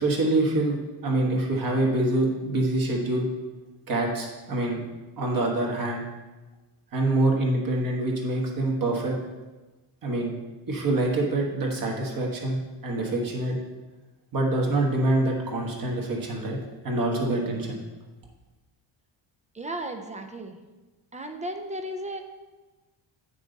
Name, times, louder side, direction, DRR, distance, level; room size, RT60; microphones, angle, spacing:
voice 1, 0.0-3.3 3.9-4.8 5.2-6.0 6.9-9.1 10.0-10.3 10.7-13.6 14.3-16.6 16.8-17.8, right 2 dB, 45° right, 0 dB, 1.6 m, -25 dB
voice 2, 19.5-20.6 21.1-22.2, right 1 dB, 15° right, 5 dB, 0.4 m, -34 dB
9.3 x 6.0 x 4.0 m, 1.2 s
cardioid pair, 170°, 47 cm